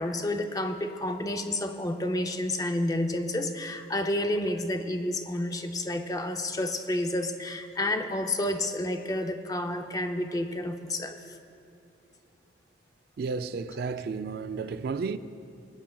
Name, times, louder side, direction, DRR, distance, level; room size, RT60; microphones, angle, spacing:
voice 1, 0.0-11.4, left 1 dB, 20° left, 0.4 m, -30 dB
voice 2, 13.2-15.2, right 4 dB, 55° right, 0.3 m, -32 dB
24.5 x 8.5 x 2.3 m
head